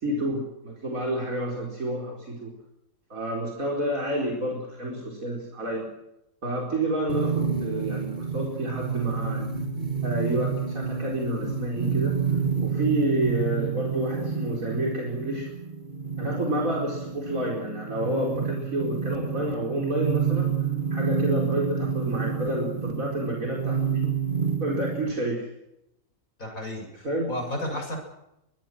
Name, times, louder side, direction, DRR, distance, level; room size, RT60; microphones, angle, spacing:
voice 1, 0.0-2.5 3.1-5.9 6.4-8.1 8.3-9.4 10.0-12.2 12.6-15.5 16.2-20.5 20.9-24.1 24.6-25.5 27.0-27.3, right 1 dB, 70° right, -2 dB, 5.0 m, -29 dB
sound 1, 7.1-25.1, right 6 dB, 35° right, 2.6 m, -29 dB
voice 2, 26.4-28.0, left 1 dB, 70° left, 2 dB, 8.1 m, -33 dB
24.0 x 20.5 x 6.3 m, 0.84 s
omnidirectional pair, 1.5 m